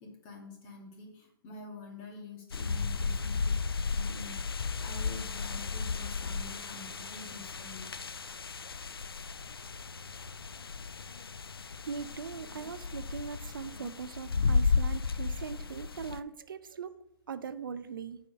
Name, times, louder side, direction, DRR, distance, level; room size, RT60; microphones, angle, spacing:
voice 1, 0.0-3.6 3.9-7.9, left 3 dB, 30° left, 1 dB, 2.2 m, -47 dB
sound 1, 2.5-16.2, left 4 dB, 80° left, 0.4 m, -34 dB
voice 2, 11.9-17.0 17.3-18.2, right 6 dB, 65° right, 13 dB, 0.5 m, -40 dB
6.7 x 4.9 x 6.4 m, 0.81 s
figure-of-eight pair, 120°, 12 cm